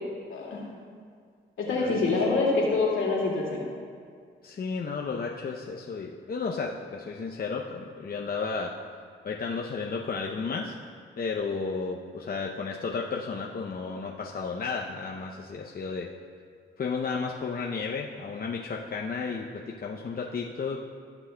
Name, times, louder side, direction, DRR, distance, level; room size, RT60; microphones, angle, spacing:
voice 1, 0.3-0.6 1.6-3.6, left 3 dB, 70° left, -4 dB, 2.2 m, -25 dB
voice 2, 1.7-2.2 4.4-8.7 9.2-10.8 11.2-16.1 16.8-20.8, left 4 dB, 45° left, -1 dB, 0.7 m, -33 dB
15.0 x 6.0 x 2.3 m, 2.1 s
supercardioid pair, 55°, 21 cm